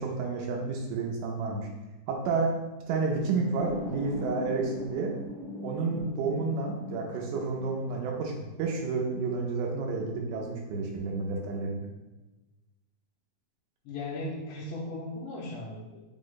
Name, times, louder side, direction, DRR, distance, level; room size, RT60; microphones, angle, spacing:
voice 1, 0.0-1.7 2.1-2.5 2.9-5.1 5.6-11.9, right 4 dB, 80° right, 0 dB, 2.2 m, -30 dB
sound 1, 3.6-8.6, left 1 dB, 65° left, 0.6 m, -40 dB
voice 2, 13.9-16.0, left 2 dB, 90° left, -6 dB, 2.3 m, -37 dB
5.5 x 2.1 x 3.8 m, 1.1 s
omnidirectional pair, 3.8 m